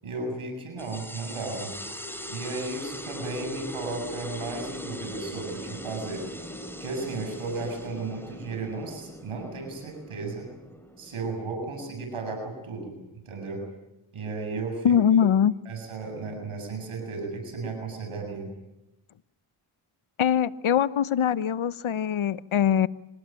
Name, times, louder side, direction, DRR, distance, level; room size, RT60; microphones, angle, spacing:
voice 1, 0.0-1.7 2.3-6.3 6.8-10.5 11.0-13.0 13.2-13.6 14.1-15.3 15.7-18.5, right 3 dB, 90° right, 4 dB, 7.5 m, -34 dB
sound 1, 0.8-11.8, equal, 5° left, 4.7 m, -40 dB
voice 2, 14.8-15.5 20.2-22.9, left 8 dB, 75° left, 16 dB, 1.0 m, -22 dB
26.0 x 19.5 x 9.0 m, 0.92 s
cardioid pair, 50°, 49 cm